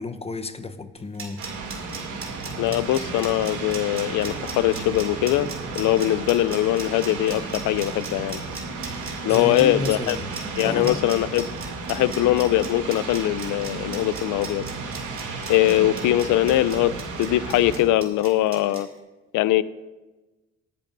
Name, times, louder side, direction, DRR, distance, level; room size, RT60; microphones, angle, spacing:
voice 1, 0.0-1.4 9.3-10.2 10.6-11.0, left 3 dB, 20° left, 0.8 m, -31 dB
sound 1, 1.0-18.8, right 4 dB, 45° right, 2.8 m, -38 dB
sound 2, 1.4-17.8, right 4 dB, 80° right, 2.6 m, -34 dB
voice 2, 2.6-5.5 5.7-8.4 9.2-10.2 10.6-11.5 11.9-14.6 15.5-16.9 17.2-18.9 19.3-19.6, left 14 dB, 85° left, 0.5 m, -21 dB
19.0 x 11.0 x 2.6 m
cardioid pair, 90°, 30 cm